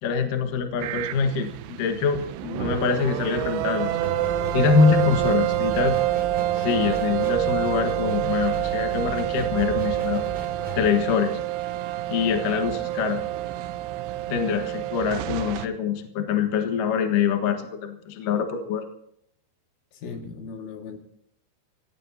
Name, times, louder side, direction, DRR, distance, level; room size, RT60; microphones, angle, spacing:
voice 1, 0.0-4.1 4.5-6.0 6.5-10.2 10.8-11.3 12.1-13.2 14.3-18.8, left 6 dB, 60° left, 5 dB, 2.4 m, -24 dB
sound 1, 0.8-15.7, right 15 dB, 80° right, 2.5 m, -27 dB
sound 2, 4.0-10.9, right 1 dB, 15° right, 2.2 m, -36 dB
voice 2, 19.9-21.0, left 5 dB, 80° left, 2 dB, 4.5 m, -37 dB
26.0 x 16.5 x 2.8 m, 0.71 s
omnidirectional pair, 5.6 m